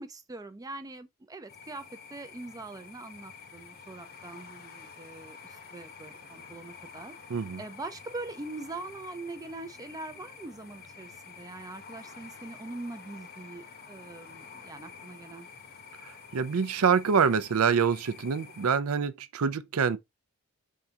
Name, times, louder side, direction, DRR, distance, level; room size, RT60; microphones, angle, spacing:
voice 1, 0.0-7.1 7.6-15.5, right 2 dB, 15° right, 0.4 m, -42 dB
sound 1, 1.5-18.8, left 5 dB, 45° left, 0.8 m, -49 dB
voice 2, 7.3-7.6 16.0-20.0, right 6 dB, 75° right, 0.5 m, -26 dB
4.6 x 3.7 x 2.8 m
head